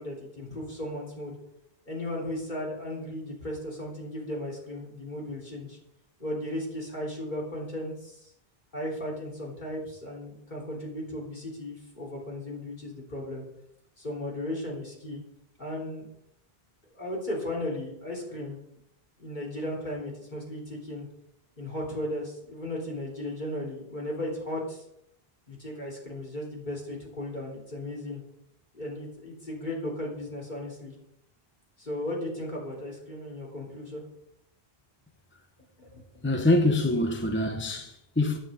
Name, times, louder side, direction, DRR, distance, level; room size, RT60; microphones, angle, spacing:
voice 1, 0.0-1.4 1.9-5.8 6.2-8.3 8.7-13.4 14.0-15.2 15.6-16.1 16.9-18.6 19.2-21.0 21.6-24.8 25.5-28.2 28.7-30.9 31.8-34.0 35.8-36.2, left 1 dB, 50° left, 3.4 m, -36 dB
voice 2, 36.2-38.4, left 2 dB, 10° left, 0.9 m, -25 dB
9.6 x 6.1 x 8.5 m
omnidirectional pair, 1.0 m